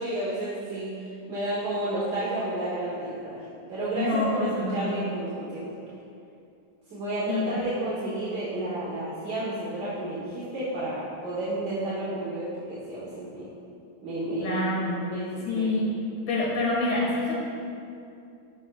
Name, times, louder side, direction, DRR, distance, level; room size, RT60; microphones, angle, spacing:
voice 1, 0.0-5.7 6.9-13.5 14.0-14.7 15.1-15.6, right 1 dB, 65° right, -9 dB, 1.8 m, -31 dB
voice 2, 4.0-4.9 7.3-7.5 14.4-15.0 15.4-15.9 16.3-17.3, left 2 dB, 80° left, -4 dB, 2.4 m, -26 dB
11.5 x 6.1 x 2.3 m, 2.5 s
omnidirectional pair, 2.1 m